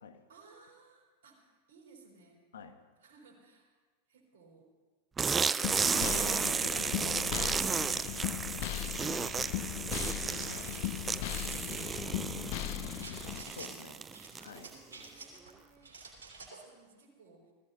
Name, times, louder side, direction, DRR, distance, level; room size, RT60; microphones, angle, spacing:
voice 1, 0.3-2.4 3.0-3.8 4.1-4.7 8.6-10.6 11.4-13.0 13.8-17.5, right 4 dB, 75° right, -1 dB, 4.6 m, -61 dB
sound 1, 5.2-14.7, right 5 dB, 20° right, 0.4 m, -33 dB
sound 2, 5.6-13.4, left 15 dB, 60° left, 0.4 m, -38 dB
voice 2, 6.0-8.0 10.5-10.8 13.4-14.0 14.4-14.7, left 6 dB, 80° left, 8 dB, 1.2 m, -48 dB
sound 3, 9.9-11.8 13.0-13.7 14.1-15.5 15.8-16.7, right 4 dB, 90° right, 3.1 m, -51 dB
19.5 x 15.0 x 2.9 m, 1.4 s
hypercardioid pair, 100°, 0 cm